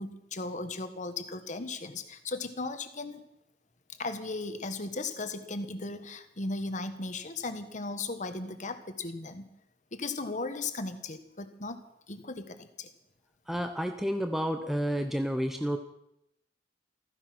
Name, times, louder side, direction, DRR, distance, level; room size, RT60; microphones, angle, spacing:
voice 1, 0.0-3.2 4.0-9.5 9.9-11.8 12.1-12.9, left 3 dB, 45° left, 9 dB, 1.4 m, -36 dB
voice 2, 13.5-15.8, equal, ahead, 6 dB, 0.7 m, -30 dB
15.0 x 15.0 x 6.0 m, 0.80 s
head